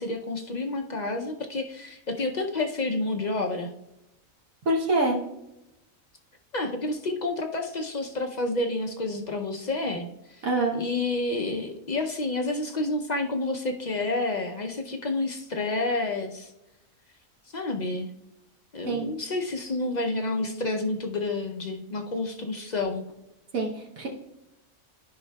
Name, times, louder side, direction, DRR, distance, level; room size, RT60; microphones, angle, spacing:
voice 1, 0.0-3.7 6.5-10.5 10.7-16.5 17.5-18.1 18.7-23.0, left 2 dB, 55° left, 4 dB, 0.5 m, -29 dB
voice 2, 4.7-5.2 10.4-10.7 18.9-19.1 23.5-24.1, right 2 dB, 80° right, -1 dB, 1.3 m, -25 dB
12.5 x 5.4 x 2.2 m, 0.90 s
omnidirectional pair, 1.4 m